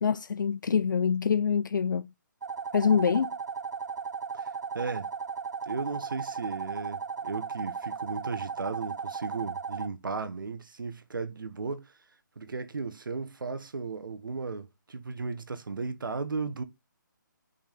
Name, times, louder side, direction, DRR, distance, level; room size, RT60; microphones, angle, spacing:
voice 1, 0.0-2.1 2.7-3.4, left 6 dB, 70° left, 0.4 m, -25 dB
sound 1, 2.4-9.9, right 5 dB, 60° right, 0.8 m, -36 dB
voice 2, 4.3-5.1 5.6-11.9 12.4-16.6, right 4 dB, 80° right, 1.4 m, -35 dB
5.7 x 5.5 x 5.3 m
hypercardioid pair, 165°, 11 cm